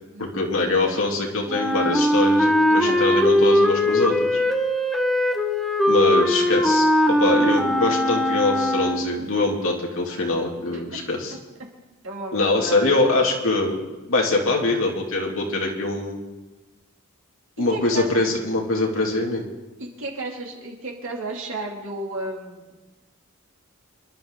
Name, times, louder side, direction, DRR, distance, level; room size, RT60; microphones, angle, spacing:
voice 1, 0.2-4.4 5.9-11.3 12.3-13.8 14.1-16.2 17.6-19.4, left 2 dB, 65° left, 0 dB, 2.7 m, -23 dB
Wind instrument woodwind instrument, 1.5-9.2, left 1 dB, ahead, 0.7 m, -20 dB
voice 2, 2.7-3.3 10.7-10.8 12.0-12.9 17.7-18.2 19.8-22.8, right 2 dB, 65° right, -1 dB, 3.0 m, -33 dB
26.5 x 12.0 x 3.9 m, 1.2 s
head